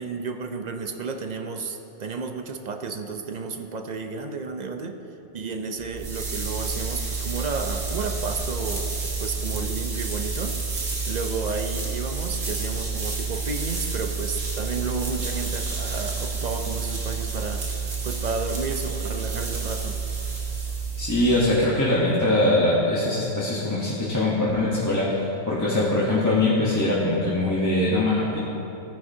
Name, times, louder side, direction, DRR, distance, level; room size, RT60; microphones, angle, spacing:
voice 1, 0.0-5.0 5.2-10.6 11.1-17.6 18.0-20.0, right 4 dB, 50° right, 5 dB, 0.5 m, -32 dB
sound 1, 5.8-21.6, right 4 dB, 85° right, 2.0 m, -29 dB
voice 2, 21.0-28.4, left 2 dB, 15° left, -8 dB, 1.1 m, -22 dB
15.0 x 9.5 x 2.7 m, 3.0 s
omnidirectional pair, 1.3 m